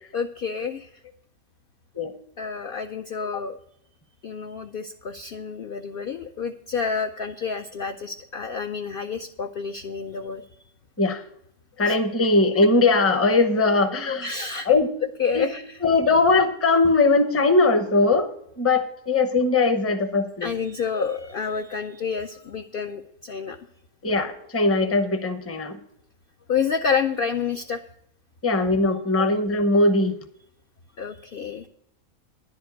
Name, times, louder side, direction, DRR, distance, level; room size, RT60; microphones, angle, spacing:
voice 1, 0.1-0.9 2.4-3.6 4.2-10.4 11.9-12.0 14.1-14.7 15.2-15.8 20.4-23.6 26.5-27.8 31.0-31.7, left 6 dB, 65° left, 6 dB, 0.5 m, -29 dB
voice 2, 11.8-14.3 14.7-14.9 15.3-15.5 15.8-18.3 18.6-20.5 24.0-25.8 28.4-30.2, left 3 dB, 15° left, 7 dB, 0.6 m, -20 dB
11.0 x 5.1 x 8.2 m, 0.73 s
omnidirectional pair, 1.5 m